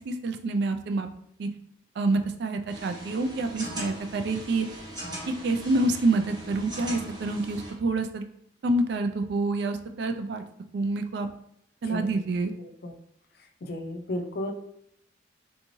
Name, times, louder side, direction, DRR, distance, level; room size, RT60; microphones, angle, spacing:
voice 1, 0.1-1.1 1.4-1.5 2.0-4.7 5.4-8.2 8.6-10.4 10.7-11.3 11.8-12.5, right 2 dB, 60° right, 7 dB, 0.3 m, -27 dB
sound 1, 2.7-7.7, equal, 20° right, 0.8 m, -40 dB
voice 2, 11.8-12.2 12.6-12.9 13.6-14.5, left 1 dB, 55° left, 4 dB, 0.4 m, -34 dB
3.5 x 2.6 x 3.0 m, 0.72 s
head